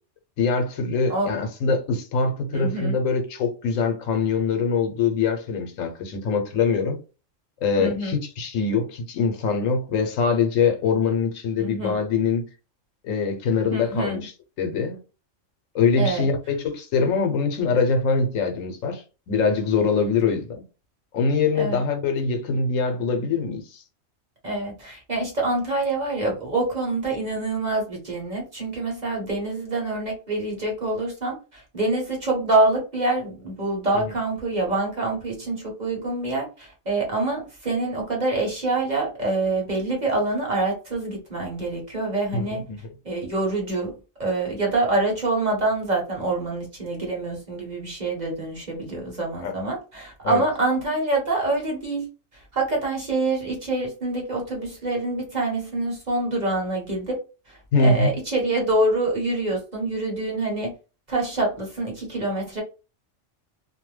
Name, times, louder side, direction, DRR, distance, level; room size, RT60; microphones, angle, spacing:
voice 1, 0.4-7.0 7.6-12.5 13.0-14.3 14.6-15.0 15.7-20.6 21.1-23.8 42.3-42.8 49.4-49.5 50.2-50.4 57.7-58.1, left 4 dB, 85° left, 1.1 m, -23 dB
voice 2, 2.5-3.0 7.8-8.1 11.6-12.0 13.7-14.2 16.0-16.3 21.5-21.8 24.4-42.6 43.0-43.9 44.2-52.1 52.5-57.2 57.5-60.7 61.1-62.6, right 2 dB, 40° right, 1.0 m, -26 dB
2.6 x 2.2 x 3.1 m
omnidirectional pair, 1.3 m